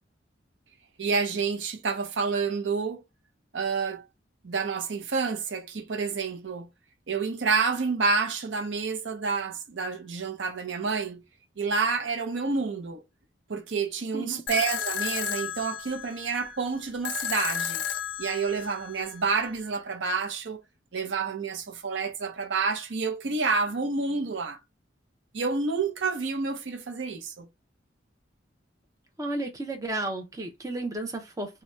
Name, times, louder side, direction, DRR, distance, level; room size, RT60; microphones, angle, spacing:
voice 1, 1.0-3.0 3.5-4.0 4.4-6.7 7.1-11.2 11.6-13.0 13.5-17.9 18.2-20.6 20.9-24.6 25.3-27.5, right 4 dB, 80° right, 0.6 m, -29 dB
sound 1, 14.5-19.5, left 9 dB, 70° left, 0.3 m, -33 dB
voice 2, 29.2-31.6, right 2 dB, 20° right, 0.6 m, -33 dB
2.7 x 2.2 x 3.1 m
head